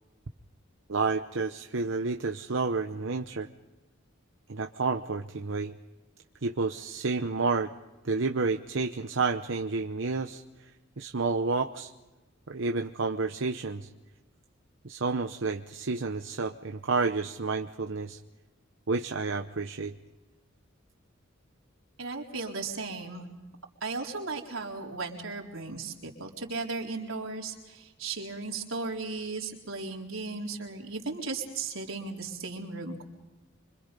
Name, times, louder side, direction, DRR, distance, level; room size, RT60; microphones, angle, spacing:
voice 1, 0.9-3.5 4.5-5.7 6.4-7.7 8.0-10.4 11.0-11.9 12.5-13.9 14.8-18.2 18.9-19.9, right 4 dB, 65° right, 6 dB, 0.9 m, -30 dB
voice 2, 22.0-23.3 23.8-33.0, right 3 dB, 90° right, 0 dB, 4.1 m, -36 dB
26.0 x 25.5 x 5.3 m, 1.1 s
head